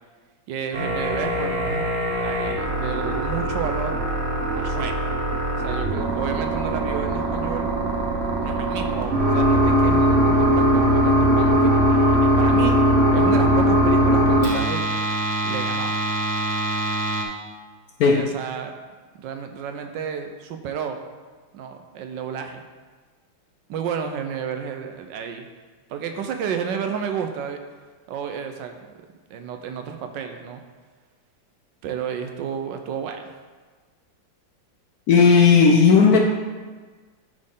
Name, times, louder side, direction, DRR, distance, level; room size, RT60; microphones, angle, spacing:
voice 1, 0.5-1.9 2.2-4.0 4.5-5.0 5.6-7.8 8.4-12.8 13.1-14.8 15.4-16.0 18.1-18.8 19.2-21.0 21.5-22.7 23.7-25.5 25.9-27.6 28.1-28.7 29.3-30.6 31.8-33.4, right 7 dB, 75° right, 6 dB, 1.3 m, -31 dB
sound 1, 0.7-17.2, equal, 40° right, 1.1 m, -21 dB
voice 2, 18.0-18.3 35.1-36.2, left 5 dB, 70° left, 2 dB, 0.9 m, -14 dB
11.0 x 4.1 x 3.7 m, 1.4 s
omnidirectional pair, 2.1 m